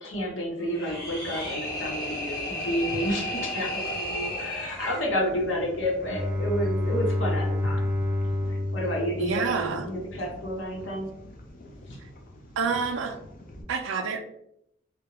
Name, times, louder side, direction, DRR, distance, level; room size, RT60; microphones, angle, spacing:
voice 1, 0.0-7.9 8.5-11.1, equal, 70° left, -2 dB, 0.8 m, -30 dB
sound 1, 0.6-5.1, left 1 dB, 20° left, 0.8 m, -33 dB
sound 2, 0.9-13.6, left 1 dB, 45° left, 0.4 m, -46 dB
Bowed string instrument, 6.0-10.0, left 1 dB, 5° right, 0.5 m, -28 dB
voice 2, 9.2-9.9 12.6-13.1 13.7-14.2, right 5 dB, 70° right, 6 dB, 0.4 m, -28 dB
2.3 x 2.1 x 2.9 m, 0.75 s
head